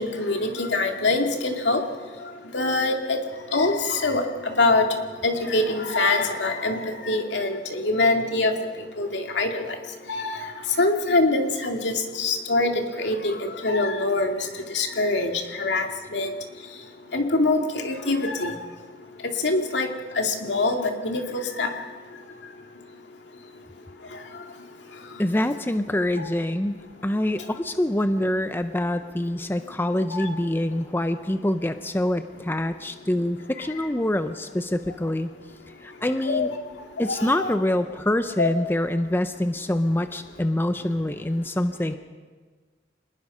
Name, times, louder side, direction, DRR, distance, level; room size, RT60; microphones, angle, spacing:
voice 1, 0.0-1.8 2.5-3.2 3.5-4.9 5.2-8.5 9.0-9.7 10.1-10.4 10.8-14.4 14.7-15.9 16.1-16.3 17.1-18.5 19.4-19.9 20.2-21.7 30.1-30.3 36.2-36.5 37.1-37.5 38.4-38.5, left 2 dB, 75° left, 3 dB, 2.4 m, -24 dB
voice 2, 25.2-35.3 35.8-36.5 37.0-41.9, left 1 dB, 10° left, 9 dB, 0.6 m, -25 dB
26.0 x 20.0 x 5.5 m, 1.4 s
head